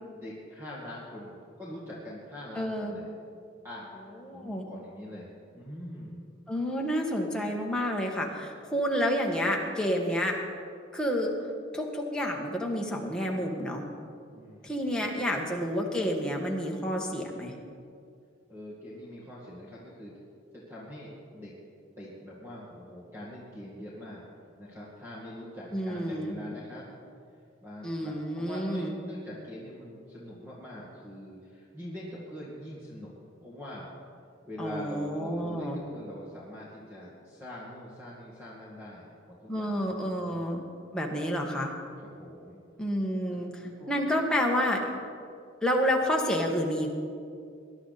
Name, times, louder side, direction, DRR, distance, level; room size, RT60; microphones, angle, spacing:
voice 1, 0.1-3.1 3.6-6.2 14.3-15.1 18.5-20.1 20.5-21.5 22.0-24.2 24.6-26.9 27.6-33.1 33.4-33.9 34.4-40.7 42.2-42.6 43.3-44.0, left 1 dB, 15° right, -7 dB, 2.1 m, -43 dB
voice 2, 2.5-2.9 4.2-4.6 6.5-10.4 10.9-11.4 11.7-13.9 14.6-17.5 25.7-26.4 27.8-28.9 34.6-35.8 39.5-40.6 40.9-41.7 42.8-44.8 45.6-46.9, equal, 5° left, -1 dB, 1.5 m, -29 dB
20.5 x 11.5 x 4.1 m, 2.4 s
head